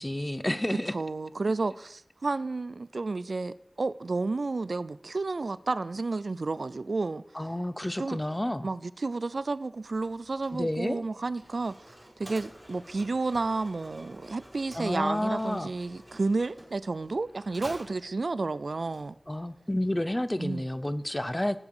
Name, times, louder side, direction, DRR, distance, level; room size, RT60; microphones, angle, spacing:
voice 1, 0.0-0.9 7.3-8.7 10.5-11.0 14.7-15.7 19.3-21.6, left 1 dB, 20° left, 0.7 m, -30 dB
voice 2, 0.7-7.2 8.0-8.2 8.6-11.7 12.2-19.1 20.4-20.6, right 3 dB, 85° right, 0.4 m, -31 dB
Mechanisms, 9.8-19.5, right 1 dB, 30° right, 4.9 m, -50 dB
17.0 x 7.3 x 4.9 m
wide cardioid pair, 60°, 0 cm